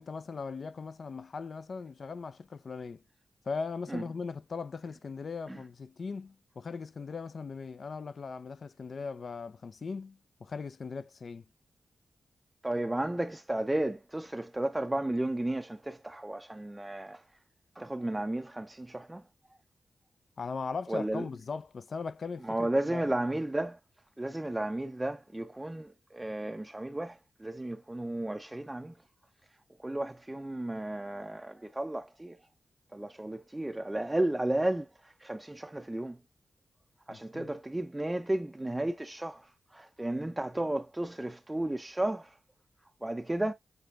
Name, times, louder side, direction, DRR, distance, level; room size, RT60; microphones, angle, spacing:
voice 1, 0.0-3.0 3.5-11.4 20.4-23.1 37.1-37.6, left 4 dB, 65° left, 0.4 m, -39 dB
voice 2, 12.6-17.2 17.8-19.2 20.9-21.2 22.4-23.8 24.2-28.9 29.8-32.4 32.9-36.2 37.1-42.4 43.0-43.5, right 1 dB, 15° right, 0.4 m, -33 dB
6.8 x 3.3 x 2.4 m
cardioid pair, 60°, 0 cm